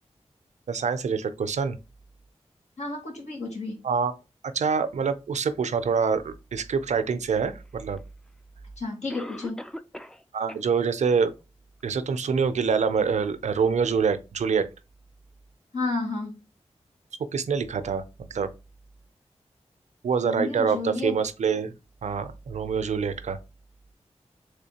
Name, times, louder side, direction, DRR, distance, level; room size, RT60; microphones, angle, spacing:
voice 1, 0.7-1.8 3.8-4.1 4.5-8.0 10.3-11.3 11.8-14.7 17.3-18.0 18.3-18.5 20.0-21.7 22.0-23.4, right 6 dB, 80° right, 0.4 m, -25 dB
voice 2, 2.8-3.8 8.8-9.6 15.7-16.3 20.2-21.1, left 3 dB, 75° left, 1.5 m, -31 dB
Cough, 8.0-8.1 9.1-10.2 10.5-10.6 11.2-11.3 11.8-11.9, equal, 5° left, 0.3 m, -39 dB
3.5 x 3.3 x 2.8 m
cardioid pair, 55°, 12 cm